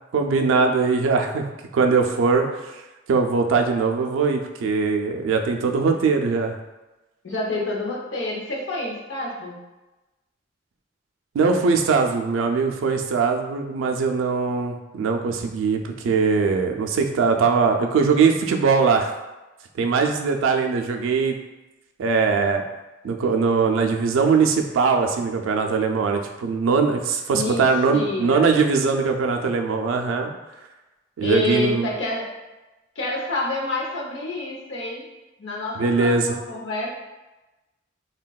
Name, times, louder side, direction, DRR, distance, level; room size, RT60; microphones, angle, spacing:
voice 1, 0.1-1.5 1.7-2.4 2.7-2.8 3.1-6.6 11.3-19.1 19.8-21.4 22.0-22.6 23.0-30.3 31.2-31.9 35.8-36.3, right 5 dB, 90° right, 4 dB, 0.3 m, -21 dB
voice 2, 7.2-9.6 27.3-27.6 27.9-28.5 31.2-32.4 33.0-35.0 35.4-36.9, left 2 dB, 70° left, -2 dB, 0.6 m, -28 dB
3.4 x 2.2 x 2.2 m, 1.1 s
head